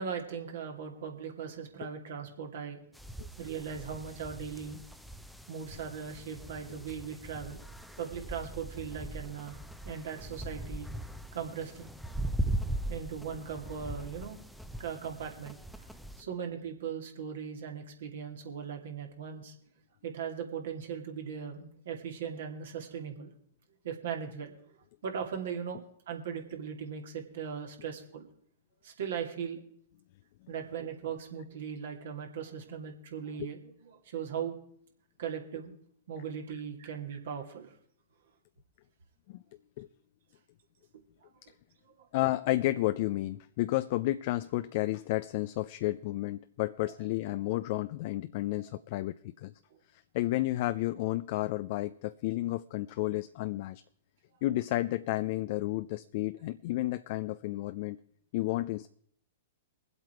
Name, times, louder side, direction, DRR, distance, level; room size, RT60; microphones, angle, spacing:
voice 1, 0.0-2.8 3.4-4.8 5.5-7.6 8.0-10.9 11.3-11.9 12.9-14.4 14.8-15.6 16.2-19.5 20.0-23.3 23.8-24.5 25.0-28.3 28.8-29.6 30.5-33.6 34.1-34.5 35.2-35.7 36.1-37.7, right 7 dB, 65° right, 2.6 m, -38 dB
Very quiet village midday ambience., 2.9-16.2, right 1 dB, ahead, 0.7 m, -40 dB
voice 2, 42.1-49.5 50.1-53.8 54.4-58.0 58.3-58.9, left 17 dB, 50° left, 0.5 m, -31 dB
22.5 x 8.0 x 4.6 m
hypercardioid pair, 110°, 0 cm